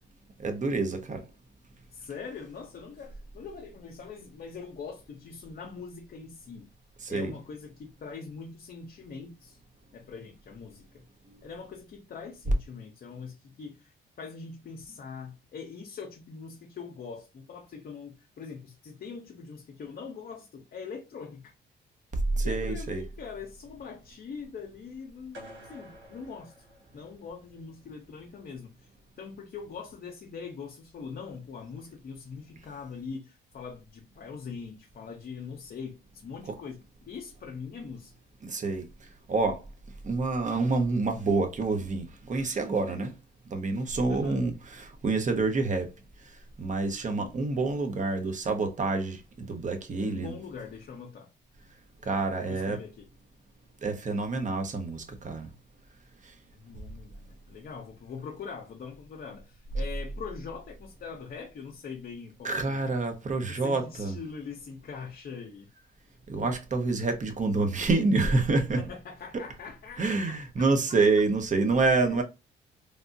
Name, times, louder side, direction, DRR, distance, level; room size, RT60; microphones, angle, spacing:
voice 1, 0.4-1.2 7.0-7.3 22.3-23.0 38.4-38.9 39.3-39.6 40.0-43.1 43.5-45.9 46.6-50.3 52.0-52.8 53.8-55.5 62.4-64.1 66.3-68.8 69.3-69.4 70.0-72.2, right 3 dB, 40° right, 0.9 m, -27 dB
voice 2, 1.9-6.7 7.1-9.6 9.9-11.0 11.4-21.5 22.4-25.4 25.7-26.5 26.9-28.9 29.2-38.1 44.1-44.4 50.0-51.3 52.4-53.1 56.5-62.8 63.5-65.7 68.8-70.7 72.0-72.2, left 5 dB, 50° left, 0.8 m, -42 dB
sound 1, 25.3-27.5, left 1 dB, 75° right, 1.8 m, -49 dB
3.4 x 2.6 x 2.6 m
cardioid pair, 90°, 20 cm